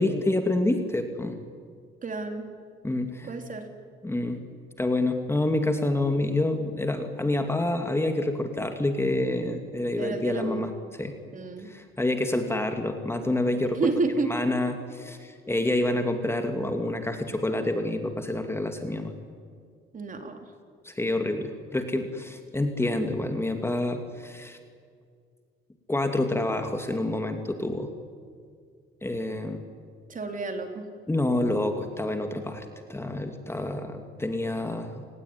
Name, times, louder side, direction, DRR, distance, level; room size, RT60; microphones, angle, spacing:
voice 1, 0.0-1.4 2.8-3.3 4.0-4.4 4.8-11.1 11.6-13.8 14.3-19.1 20.8-24.6 25.9-27.9 29.0-29.6 31.1-35.0, left 1 dB, 10° left, 5 dB, 2.4 m, -28 dB
voice 2, 2.0-2.5 3.3-3.7 10.0-10.6 11.3-11.7 13.7-14.3 19.9-20.5 30.1-30.9, right 3 dB, 40° right, 5 dB, 3.8 m, -30 dB
28.5 x 19.5 x 9.8 m, 2.1 s
cardioid pair, 110°, 21 cm